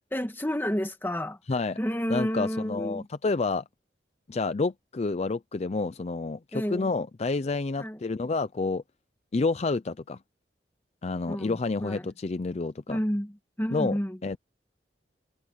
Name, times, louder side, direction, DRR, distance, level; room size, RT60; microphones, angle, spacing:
voice 1, 0.1-1.4 1.8-3.1 6.5-6.9 7.8-8.0 11.3-12.1 12.9-14.2, equal, 10° left, 1.7 m, -31 dB
voice 2, 2.1-3.6 4.3-8.8 9.3-10.2 11.0-13.0 13.7-13.9 14.2-14.4, left 3 dB, 40° left, 0.5 m, -29 dB
head